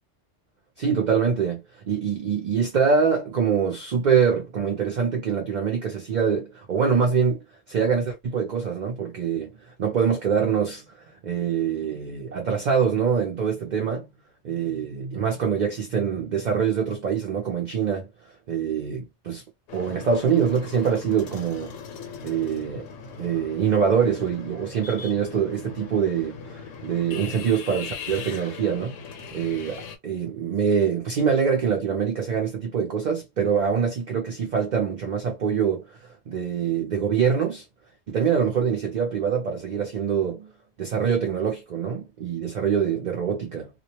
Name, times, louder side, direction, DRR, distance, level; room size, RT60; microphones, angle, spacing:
voice 1, 0.8-9.5 9.8-14.1 14.4-18.1 18.5-19.4 19.7-21.7 22.2-22.9 23.2-28.9 29.3-36.0 36.3-37.7 38.1-40.5 40.8-43.7, right 6 dB, 55° right, 0.5 m, -24 dB
sound 1, 19.7-30.0, left 6 dB, 80° left, 1.0 m, -39 dB
2.3 x 2.0 x 2.7 m
omnidirectional pair, 1.3 m